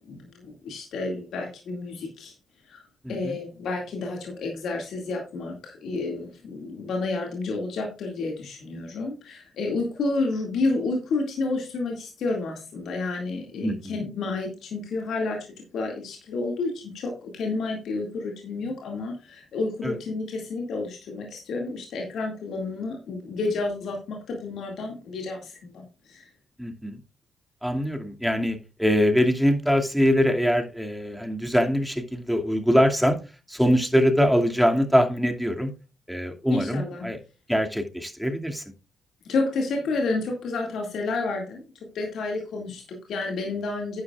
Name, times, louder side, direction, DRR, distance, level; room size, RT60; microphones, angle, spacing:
voice 1, 0.1-2.3 2.6-2.8 3.1-15.5 15.7-26.3 36.5-37.1 39.3-41.6 41.9-44.0, left 3 dB, 70° left, 1 dB, 2.2 m, -30 dB
voice 2, 3.0-3.3 13.6-14.0 19.8-20.0 26.6-27.0 27.6-33.2 33.5-35.7 36.1-37.2 37.5-38.6, equal, ahead, 3 dB, 2.3 m, -23 dB
12.0 x 9.6 x 2.4 m, 0.32 s
hypercardioid pair, 45°, 0 cm